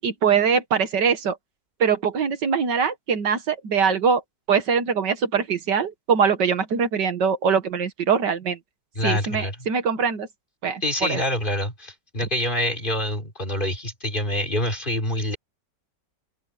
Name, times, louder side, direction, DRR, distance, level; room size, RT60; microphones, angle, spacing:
voice 1, 0.0-1.4 1.8-4.2 4.5-8.6 9.0-10.3 10.6-11.2, right 6 dB, 70° right, 2.0 m, -22 dB
voice 2, 9.0-9.6 10.8-15.4, left 1 dB, 25° left, 4.5 m, -26 dB
open air
omnidirectional pair, 1.9 m